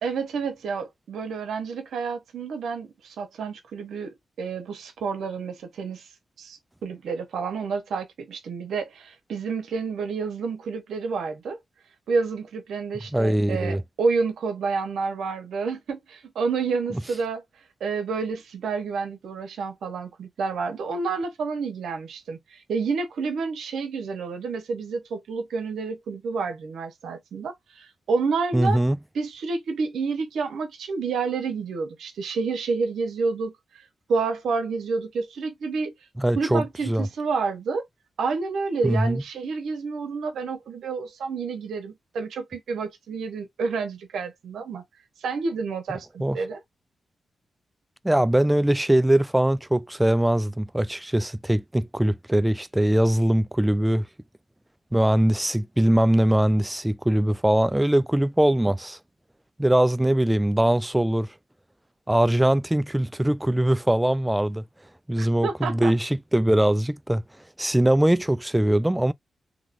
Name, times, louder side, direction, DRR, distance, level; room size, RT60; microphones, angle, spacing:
voice 1, 0.0-6.1 6.4-11.6 12.1-17.4 17.8-28.8 29.1-33.8 34.1-35.9 36.3-37.9 38.2-44.8 45.2-46.6 65.2-65.9, right 4 dB, 85° right, 0.8 m, -29 dB
voice 2, 13.1-13.8 16.9-17.0 28.5-29.0 36.2-37.1 38.8-39.2 46.2-46.4 48.0-54.1 54.9-59.0 59.6-61.3 62.1-64.6 65.1-67.2 67.6-69.1, right 1 dB, 10° right, 0.3 m, -21 dB
2.9 x 2.8 x 2.5 m
cardioid pair, 60°, 0 cm